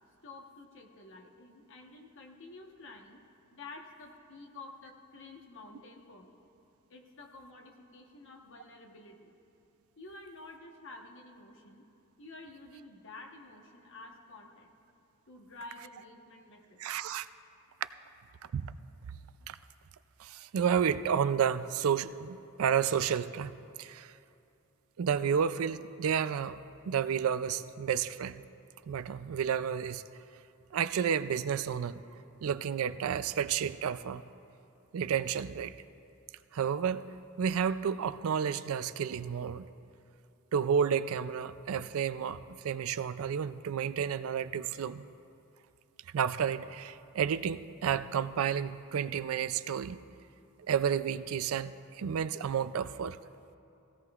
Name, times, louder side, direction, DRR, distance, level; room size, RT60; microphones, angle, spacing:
voice 1, 0.2-3.2 3.5-6.5 6.9-9.3 10.0-11.8 12.2-14.7 15.3-16.8, left 2 dB, 60° left, 2 dB, 1.2 m, -50 dB
voice 2, 16.8-17.3 18.5-18.7 19.5-19.6 20.2-24.1 25.0-26.6 26.9-28.4 28.9-30.0 30.7-32.0 32.4-34.2 34.9-35.7 36.5-37.0 37.4-39.6 40.5-45.0 46.1-50.0 50.7-53.2, right 7 dB, 70° right, 14 dB, 0.4 m, -31 dB
16.5 x 16.5 x 2.4 m, 2.7 s
head